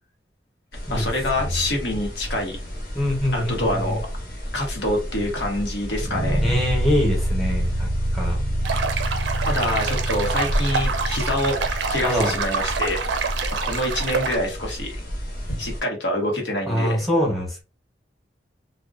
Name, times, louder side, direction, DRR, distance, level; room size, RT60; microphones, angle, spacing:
sound 1, 0.7-15.8, equal, 55° left, 1.0 m, -32 dB
voice 1, 0.9-2.6 3.3-4.0 4.5-6.4 9.4-13.0 13.6-14.9 15.6-17.0, left 1 dB, 85° left, 1 dB, 0.9 m, -26 dB
voice 2, 2.9-4.0 6.4-8.4 12.0-12.3 16.7-17.6, left 1 dB, ahead, -3 dB, 0.9 m, -24 dB
sound 2, 6.0-15.0, right 1 dB, 25° right, 0.5 m, -28 dB
sound 3, 8.6-14.4, right 5 dB, 90° right, 0.4 m, -27 dB
2.4 x 2.1 x 2.4 m, 0.31 s
head